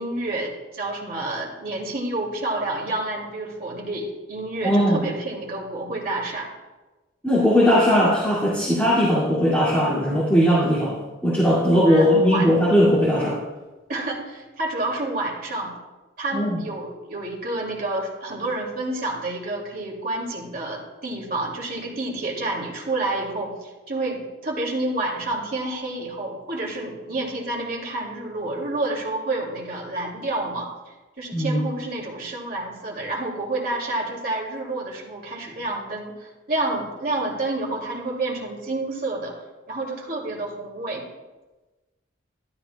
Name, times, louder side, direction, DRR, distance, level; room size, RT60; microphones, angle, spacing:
voice 1, 0.0-6.5 11.9-12.5 13.9-15.7 16.2-39.3 39.7-41.1, right 2 dB, 50° right, -2 dB, 2.3 m, -29 dB
voice 2, 4.6-5.1 7.2-13.4 16.3-16.6 31.3-31.6, equal, 10° left, -8 dB, 2.1 m, -19 dB
12.5 x 11.5 x 2.2 m, 1.2 s
head